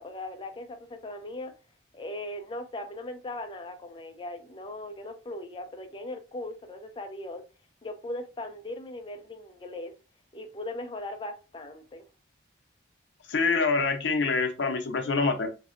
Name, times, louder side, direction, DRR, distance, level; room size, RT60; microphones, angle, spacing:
voice 1, 0.0-1.5 1.9-7.4 7.8-9.9 10.3-12.0, left 1 dB, 25° left, 0.3 m, -39 dB
voice 2, 13.3-15.5, left 4 dB, 75° left, 0.6 m, -25 dB
2.6 x 2.1 x 2.5 m
head